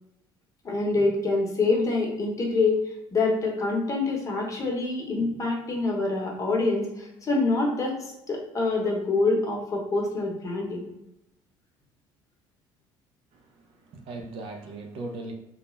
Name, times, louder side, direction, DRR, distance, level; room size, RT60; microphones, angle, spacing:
voice 1, 0.6-10.8, left 3 dB, 35° left, -1 dB, 0.8 m, -26 dB
voice 2, 13.3-15.3, right 2 dB, 65° right, 3 dB, 0.5 m, -39 dB
2.3 x 2.1 x 3.0 m, 0.89 s
supercardioid pair, 95°, 10 cm